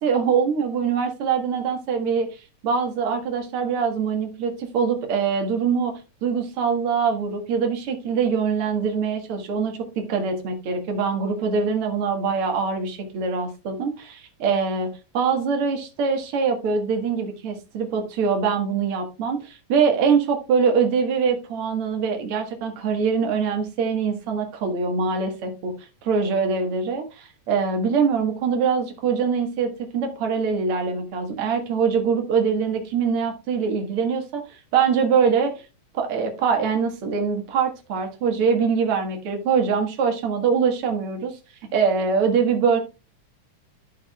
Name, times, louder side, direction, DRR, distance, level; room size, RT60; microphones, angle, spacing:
voice 1, 0.0-2.3 2.6-25.7 26.0-35.5 35.9-41.4 41.7-42.8, right 5 dB, 50° right, 3 dB, 2.2 m, -23 dB
12.5 x 5.9 x 2.3 m, 0.28 s
omnidirectional pair, 3.7 m